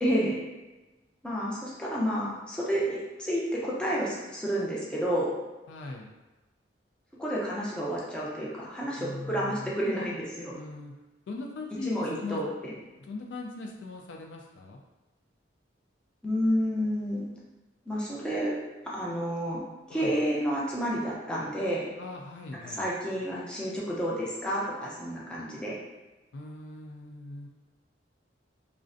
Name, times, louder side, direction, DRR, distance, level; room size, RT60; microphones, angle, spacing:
voice 1, 0.0-0.4 1.2-5.3 7.2-10.5 11.9-12.7 16.2-17.3 17.9-18.6 18.9-19.6 19.9-21.9 22.8-25.8, equal, 5° left, -6 dB, 0.5 m, -30 dB
voice 2, 5.7-6.1 9.0-9.7 10.5-10.9 11.3-12.5 13.0-14.8 19.9-20.2 22.0-22.9 26.3-27.5, left 3 dB, 70° left, 1 dB, 0.4 m, -40 dB
2.4 x 2.1 x 2.5 m, 1.1 s
head